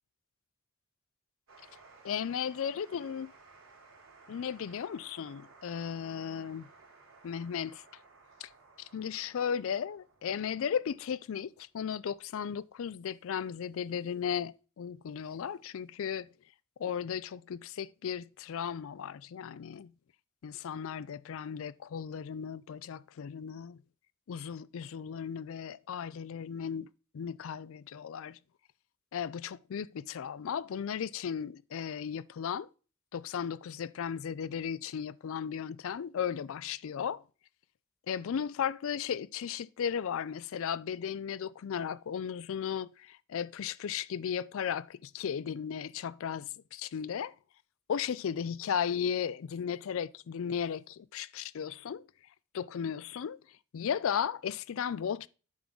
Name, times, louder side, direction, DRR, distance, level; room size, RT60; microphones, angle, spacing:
sound 1, 1.5-14.4, right 4 dB, 70° right, 2.9 m, -58 dB
voice 1, 2.0-3.3 4.3-6.7 7.2-7.8 8.4-8.5 8.8-16.3 16.8-19.9 20.4-23.8 24.3-26.9 27.1-28.4 29.1-32.7 33.1-37.2 38.1-47.4 47.9-52.0 52.5-53.4 53.7-55.3, left 7 dB, 65° left, 0.4 m, -35 dB
8.5 x 3.9 x 6.0 m
head